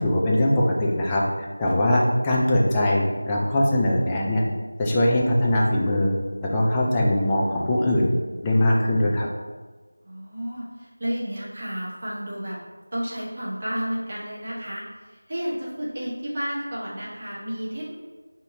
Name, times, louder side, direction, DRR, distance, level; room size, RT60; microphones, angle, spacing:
voice 1, 0.0-4.4 4.8-6.2 6.4-8.1 8.4-9.3, left 1 dB, 10° left, -4 dB, 0.3 m, -21 dB
voice 2, 10.0-12.6 12.9-17.9, equal, 30° right, -7 dB, 1.1 m, -31 dB
5.9 x 2.8 x 2.7 m, 1.4 s
figure-of-eight pair, 175°, 0 cm